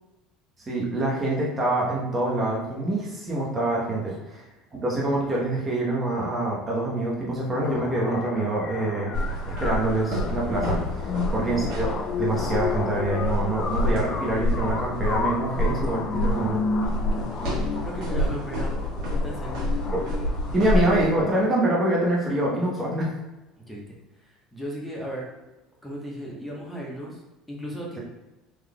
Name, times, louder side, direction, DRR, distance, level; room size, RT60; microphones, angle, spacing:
voice 1, 0.7-4.4 4.7-9.2 9.5-11.9 12.2-16.6 19.9-20.0 20.5-23.1, right 2 dB, 25° right, -4 dB, 1.0 m, -25 dB
sound 1, 7.5-21.5, left 5 dB, 40° left, 0.3 m, -32 dB
sound 2, 9.1-21.1, left 1 dB, 65° right, 1.3 m, -28 dB
voice 2, 16.9-17.5 17.8-18.7 19.1-19.7 23.7-23.9 24.2-25.3 25.8-27.2 27.5-28.0, equal, 5° left, -4 dB, 1.1 m, -36 dB
3.6 x 3.2 x 2.2 m, 1.1 s
hypercardioid pair, 80°, 0 cm